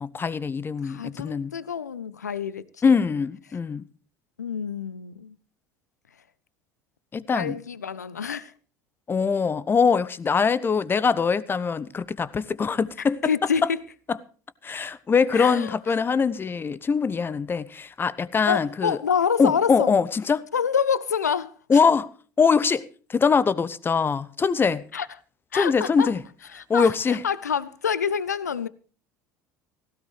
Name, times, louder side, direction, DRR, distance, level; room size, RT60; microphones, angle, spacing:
voice 1, 0.0-1.5 2.8-3.8 7.1-7.5 9.1-13.2 14.6-19.0 19.4-20.4 21.7-22.1 22.4-24.8 25.5-26.2 26.7-27.2, left 5 dB, 25° left, 0.9 m, -23 dB
voice 2, 0.8-3.0 4.4-5.4 7.3-8.5 13.2-13.8 15.3-15.8 18.5-19.9 20.5-21.8 24.9-25.1 25.5-26.1 26.5-28.7, left 7 dB, 80° left, 0.6 m, -27 dB
17.5 x 16.0 x 3.2 m
figure-of-eight pair, 65°, 9 cm